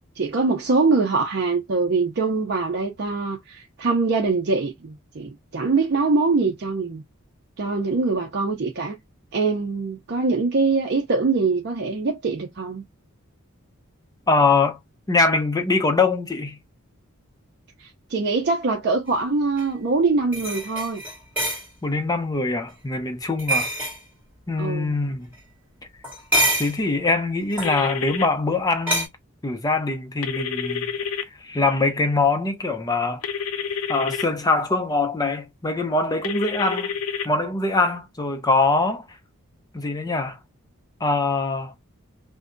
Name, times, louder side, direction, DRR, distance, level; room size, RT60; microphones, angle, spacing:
voice 1, 0.2-7.0 7.6-9.0 9.3-12.8 17.8-21.0 24.6-25.0, right 3 dB, 50° right, 0.5 m, -23 dB
voice 2, 14.3-14.8 15.1-16.6 21.8-23.7 24.5-25.3 26.6-29.1 29.4-30.9 31.4-33.2 33.9-37.0 37.2-39.0 39.7-40.4 41.0-41.7, left 3 dB, 15° left, 0.5 m, -23 dB
sound 1, 19.6-19.7 20.3-21.6 23.4-24.0 26.0-26.8 27.5-27.7 28.9-29.1, right 1 dB, 10° right, 1.6 m, -24 dB
sound 2, 27.6-28.2 30.2-31.2 33.2-34.2 36.2-37.3, left 7 dB, 75° left, 0.5 m, -28 dB
2.7 x 2.1 x 2.5 m
head